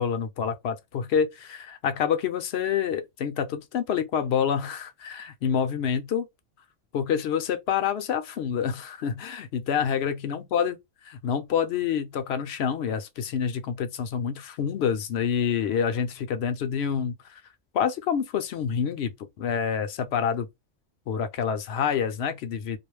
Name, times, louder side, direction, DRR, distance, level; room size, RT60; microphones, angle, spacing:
voice 1, 0.0-6.3 6.9-10.8 11.1-17.1 17.7-19.1 19.4-20.5 21.1-22.8, left 7 dB, 65° left, 0.7 m, -27 dB
2.4 x 2.1 x 3.1 m
omnidirectional pair, 1.3 m